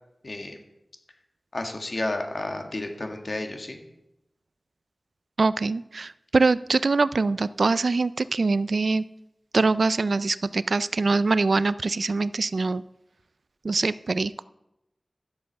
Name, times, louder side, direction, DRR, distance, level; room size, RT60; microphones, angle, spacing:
voice 1, 0.2-0.6 1.5-3.8, left 2 dB, 60° left, 4 dB, 2.0 m, -31 dB
voice 2, 5.4-9.0 9.5-12.8 13.6-14.4, right 3 dB, 75° right, 17 dB, 0.4 m, -23 dB
11.0 x 7.9 x 6.6 m, 0.88 s
wide cardioid pair, 45°, 0 cm